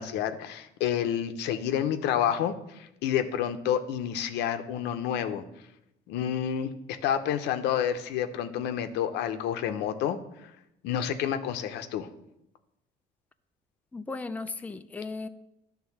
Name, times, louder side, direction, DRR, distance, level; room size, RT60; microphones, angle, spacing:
voice 1, 0.0-5.4 6.1-6.7 7.0-10.2 10.8-12.1, left 9 dB, 85° left, 9 dB, 0.8 m, -29 dB
voice 2, 13.9-15.3, left 3 dB, 10° left, 9 dB, 0.4 m, -36 dB
11.0 x 3.7 x 7.2 m, 0.84 s
cardioid pair, 110°, 17 cm